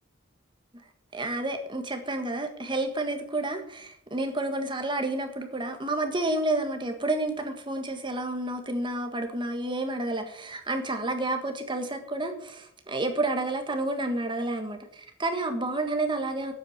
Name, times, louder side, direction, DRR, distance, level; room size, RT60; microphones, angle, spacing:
voice 1, 1.1-16.5, right 2 dB, 25° right, 5 dB, 1.6 m, -30 dB
8.9 x 8.2 x 8.6 m, 0.70 s
head